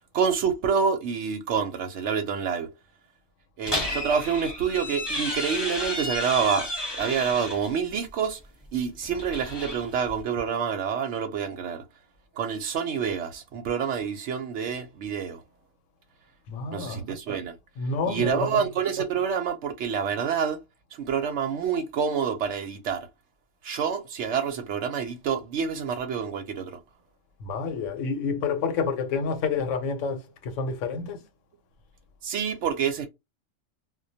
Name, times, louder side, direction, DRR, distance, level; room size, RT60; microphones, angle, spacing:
voice 1, 0.1-2.7 3.6-6.7 7.0-8.4 8.7-11.8 12.4-15.4 16.7-17.5 18.1-20.6 21.0-23.1 23.6-26.7 32.2-33.1, right 7 dB, 65° right, 0.8 m, -27 dB
sound 1, 3.6-7.7 9.0-10.2, left 1 dB, 25° left, 0.8 m, -32 dB
voice 2, 16.5-17.0 17.8-18.6 27.4-31.2, left 5 dB, 75° left, 0.9 m, -29 dB
2.2 x 2.1 x 2.6 m
omnidirectional pair, 1.4 m